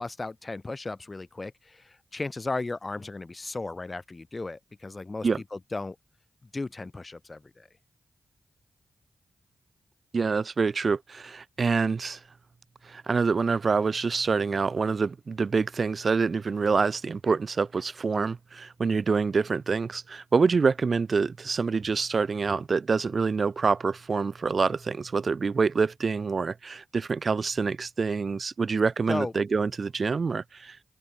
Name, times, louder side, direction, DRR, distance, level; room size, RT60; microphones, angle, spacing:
voice 1, 0.0-6.0 6.4-7.7 29.1-29.3, left 3 dB, 35° left, 1.5 m, -35 dB
voice 2, 10.1-12.2 12.8-30.8, right 4 dB, 55° right, 1.4 m, -26 dB
open air
supercardioid pair, 40°, 0 cm